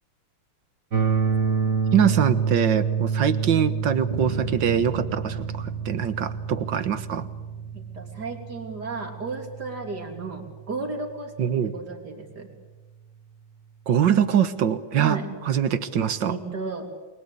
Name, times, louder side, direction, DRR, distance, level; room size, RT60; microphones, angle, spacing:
sound 1, 0.9-10.8, right 6 dB, 40° right, 2.2 m, -28 dB
voice 1, 1.9-7.3 11.4-11.7 13.9-15.2 15.5-16.3, right 8 dB, 80° right, 12 dB, 2.0 m, -23 dB
sound 2, 4.1-6.6, left 4 dB, 35° left, 4.6 m, -47 dB
sound 3, 4.1-8.5, right 1 dB, 20° right, 4.6 m, -39 dB
voice 2, 7.7-12.5 15.0-15.3 16.3-16.9, right 3 dB, 60° right, 4 dB, 3.9 m, -34 dB
29.0 x 22.5 x 8.4 m, 1.2 s
omnidirectional pair, 2.0 m